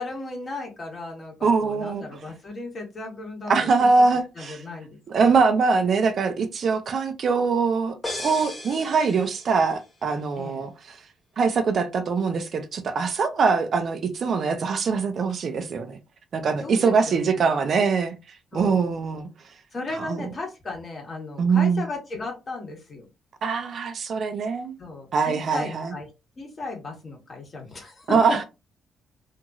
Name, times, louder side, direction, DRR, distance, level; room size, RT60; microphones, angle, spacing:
voice 1, 0.0-3.9 4.4-5.0 10.4-10.6 16.6-17.4 18.5-18.9 19.7-23.0 24.8-26.1 26.4-28.4, left 3 dB, 40° left, 1.4 m, -35 dB
voice 2, 1.4-2.0 3.5-4.6 5.1-11.0 11.4-16.0 16.3-18.1 18.5-19.3 20.0-20.3 21.4-21.9 23.4-24.8 25.1-25.9 28.1-28.4, right 5 dB, 55° right, 0.5 m, -23 dB
sound 1, 8.0-9.8, left 1 dB, 10° left, 1.3 m, -36 dB
2.9 x 2.6 x 2.3 m
cardioid pair, 90°, 0 cm